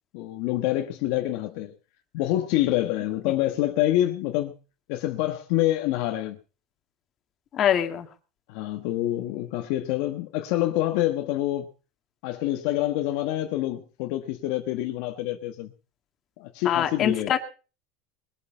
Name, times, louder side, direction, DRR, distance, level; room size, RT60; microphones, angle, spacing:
voice 1, 0.1-1.7 2.1-4.5 4.9-6.4 8.5-11.7 12.2-15.7 16.4-17.4, left 14 dB, 60° left, 1.4 m, -26 dB
voice 2, 7.5-8.1 16.7-17.4, left 9 dB, 30° left, 2.2 m, -23 dB
21.5 x 8.8 x 5.5 m
supercardioid pair, 160°, 0 cm